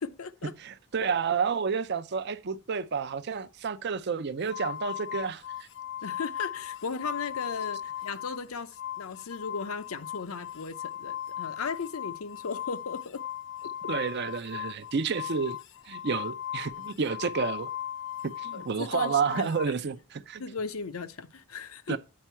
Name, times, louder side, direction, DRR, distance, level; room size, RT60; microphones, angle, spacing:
voice 1, 0.0-0.5 1.0-1.1 6.0-13.2 13.6-13.7 18.5-19.5 20.4-22.0, left 5 dB, 85° left, 0.7 m, -36 dB
voice 2, 0.6-5.7 13.9-15.6 15.9-17.7 18.2-20.4 21.9-22.0, right 5 dB, 55° right, 0.5 m, -30 dB
sound 1, 4.5-8.4 8.7-19.7, left 11 dB, 60° left, 0.3 m, -38 dB
8.6 x 4.6 x 4.4 m
head